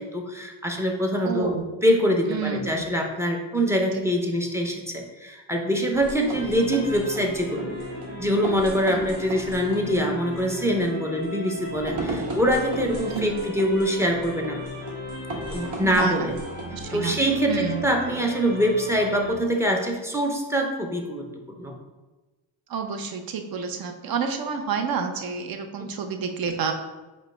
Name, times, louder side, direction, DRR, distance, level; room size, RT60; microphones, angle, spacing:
voice 1, 0.0-1.5 1.8-7.8 8.2-14.6 15.5-16.4 16.9-21.3 21.6-21.8, equal, 5° right, 1 dB, 0.5 m, -24 dB
voice 2, 1.2-1.6 2.3-2.6 8.9-9.0 13.1-13.4 15.8-16.2 16.6-17.2 17.5-17.9 22.7-26.7, right 6 dB, 50° right, 5 dB, 0.6 m, -29 dB
sound 1, 5.9-16.9, right 2 dB, 75° right, 1.1 m, -37 dB
sound 2, 6.3-19.3, left 1 dB, 25° right, 1.0 m, -37 dB
4.8 x 2.3 x 4.3 m, 1.1 s
cardioid pair, 125°, 45 cm